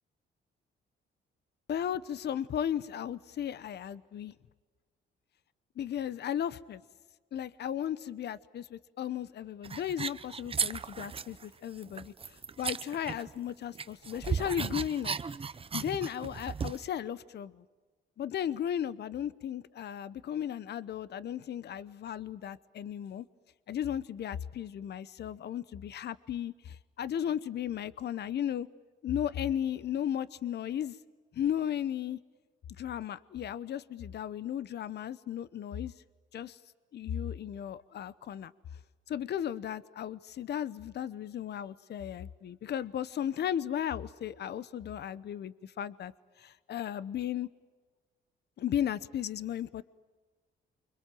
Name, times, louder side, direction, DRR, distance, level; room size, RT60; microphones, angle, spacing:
voice 1, 1.7-4.3 5.8-6.8 7.3-15.2 15.7-17.6 18.2-23.3 23.7-28.7 29.0-31.0 31.3-32.2 32.8-35.9 36.3-36.6 36.9-38.5 39.1-46.1 46.4-47.5 48.6-49.8, left 10 dB, 60° left, 16 dB, 0.8 m, -35 dB
sound 1, 9.6-11.4 11.8-13.5 13.7-16.9, right 5 dB, 30° right, 0.8 m, -36 dB
29.0 x 25.0 x 7.6 m, 1.4 s
cardioid pair, 90°, 20 cm